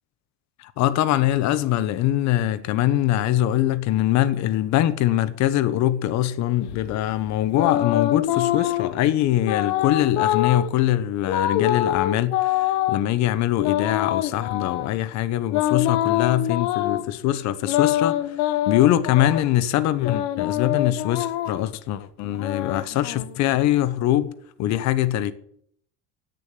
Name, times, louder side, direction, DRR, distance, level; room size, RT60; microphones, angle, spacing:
voice 1, 0.6-18.4 18.7-24.3 24.6-25.3, left 13 dB, 55° left, 1.1 m, -23 dB
sound 1, 6.7-9.0 9.4-10.7 11.3-13.0 13.6-14.9 15.5-17.0 17.6-19.5 20.0-21.7 22.2-23.6, left 13 dB, 75° left, 1.2 m, -25 dB
10.5 x 8.5 x 9.2 m
cardioid pair, 125°, 32 cm